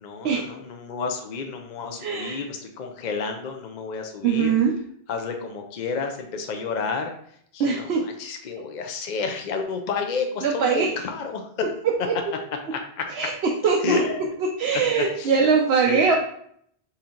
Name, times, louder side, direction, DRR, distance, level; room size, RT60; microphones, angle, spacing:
voice 1, 0.0-4.5 5.1-7.1 7.5-11.7 12.7-13.1 13.8-14.2 14.9-15.3 15.9-16.2, left 5 dB, 55° left, 4 dB, 0.6 m, -30 dB
voice 2, 2.0-2.4 4.2-4.7 7.6-8.0 10.4-10.9 12.1-12.2 13.1-14.0 14.6-16.2, right 5 dB, 80° right, 0 dB, 0.9 m, -22 dB
4.3 x 2.7 x 3.8 m, 0.65 s
omnidirectional pair, 1.1 m